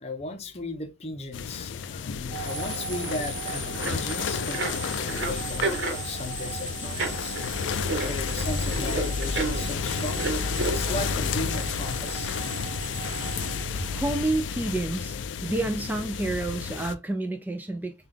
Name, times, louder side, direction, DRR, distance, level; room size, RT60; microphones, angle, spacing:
voice 1, 0.0-7.4 8.1-10.3 10.7-12.3 13.2-13.4, left 2 dB, 35° left, 0.6 m, -36 dB
sound 1, 1.3-16.9, left 6 dB, 80° left, 0.4 m, -31 dB
sound 2, 2.3-14.5, right 6 dB, 40° right, 0.9 m, -39 dB
sound 3, 3.7-4.0 4.3-11.0, right 3 dB, 75° right, 1.0 m, -32 dB
voice 2, 13.9-15.2 15.4-17.9, right 2 dB, 10° right, 0.3 m, -29 dB
3.7 x 2.3 x 3.2 m
head